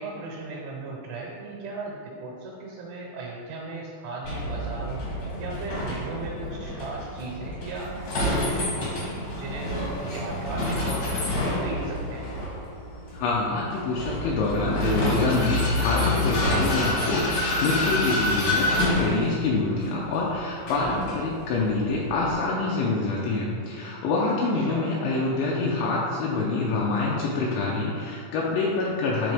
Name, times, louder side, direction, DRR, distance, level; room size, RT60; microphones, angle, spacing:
voice 1, 0.0-5.1 5.4-12.3 20.7-21.0 24.5-24.9, right 3 dB, 80° right, -3 dB, 3.1 m, -37 dB
Vehicle, 4.2-22.3, left 1 dB, 65° left, 1.7 m, -28 dB
voice 2, 13.1-29.3, left 3 dB, 80° left, -4 dB, 2.8 m, -26 dB
10.0 x 3.8 x 3.4 m, 2.5 s
omnidirectional pair, 5.6 m